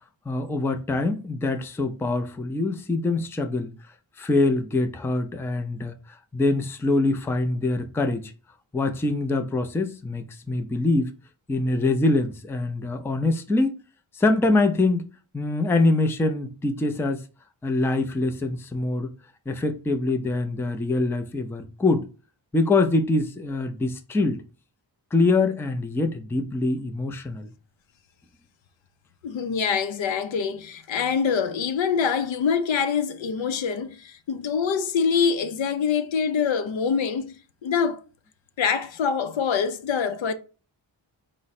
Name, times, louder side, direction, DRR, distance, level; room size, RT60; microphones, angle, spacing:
voice 1, 0.3-3.7 4.2-8.3 8.7-11.1 11.5-13.7 14.1-15.0 15.3-17.2 17.6-19.1 19.5-22.1 22.5-24.4 25.1-27.5, left 2 dB, 5° left, 0.3 m, -24 dB
voice 2, 29.2-37.4 37.6-38.0 38.6-40.3, left 6 dB, 80° left, 0.6 m, -25 dB
4.8 x 2.1 x 4.1 m
wide cardioid pair, 170°, 46 cm